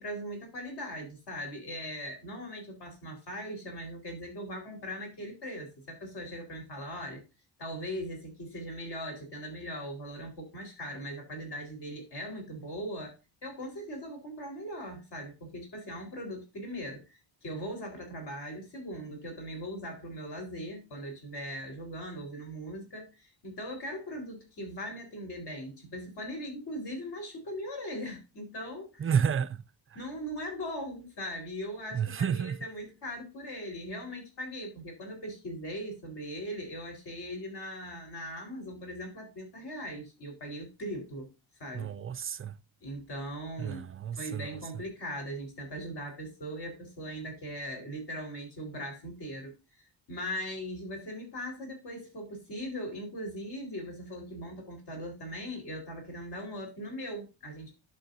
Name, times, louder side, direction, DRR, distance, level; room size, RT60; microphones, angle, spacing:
voice 1, 0.0-7.2 7.6-13.2 13.4-29.1 29.9-41.3 41.6-41.9 42.8-43.8 44.2-57.8, equal, 60° left, 4.3 m, -40 dB
voice 2, 29.0-29.6 31.9-32.6 41.7-42.6 43.6-44.5, right 7 dB, 30° right, 0.4 m, -30 dB
11.5 x 6.8 x 2.7 m
wide cardioid pair, 155°, 45 cm